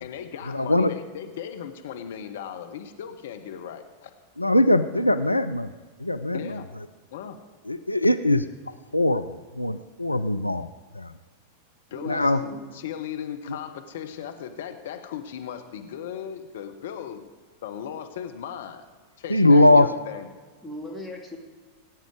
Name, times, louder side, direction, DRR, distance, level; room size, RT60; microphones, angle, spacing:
voice 1, 0.0-4.1 6.3-6.7 7.1-7.4 11.9-17.2 17.6-18.8 19.2-20.3, left 8 dB, 60° left, 7 dB, 1.0 m, -37 dB
voice 2, 0.5-0.9 4.4-5.7 6.0-6.5 7.7-8.5 8.9-10.7 11.0-11.1 12.1-12.4 13.5-13.6 19.3-19.9, left 1 dB, 85° left, 11 dB, 0.4 m, -21 dB
voice 3, 11.9-12.6 19.4-19.9 20.6-21.4, left 1 dB, 5° left, -1 dB, 2.3 m, -38 dB
18.5 x 9.3 x 4.9 m, 1.4 s
figure-of-eight pair, 90°, 0 cm